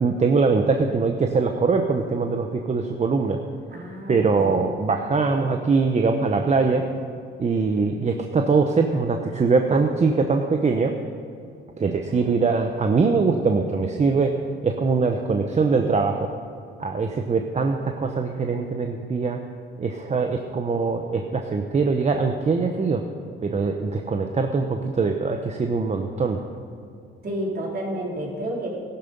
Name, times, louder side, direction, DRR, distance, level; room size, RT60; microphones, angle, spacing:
voice 1, 0.0-3.4 4.1-6.8 7.4-11.0 11.8-14.3 14.6-16.3 16.8-19.4 19.8-23.0 23.4-26.4, right 4 dB, 35° right, 4 dB, 1.0 m, -22 dB
voice 2, 3.7-4.6 12.0-12.2 27.2-28.8, right 1 dB, 50° right, -3 dB, 4.1 m, -30 dB
15.0 x 11.5 x 5.4 m, 2.4 s
cardioid pair, 90°, 20 cm